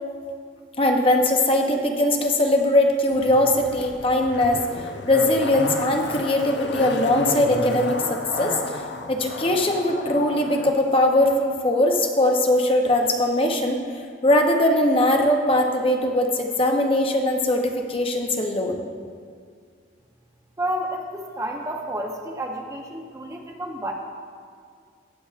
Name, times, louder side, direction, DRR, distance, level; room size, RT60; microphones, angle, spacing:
voice 1, 0.8-8.8 9.1-13.8 14.2-18.8, left 1 dB, 30° left, 2 dB, 0.7 m, -21 dB
Zipper (clothing), 3.1-10.7 11.0-11.1, left 3 dB, 65° left, 0.6 m, -32 dB
voice 2, 20.6-23.9, right 1 dB, 15° right, 2 dB, 0.6 m, -30 dB
18.5 x 6.9 x 2.4 m, 2.2 s
head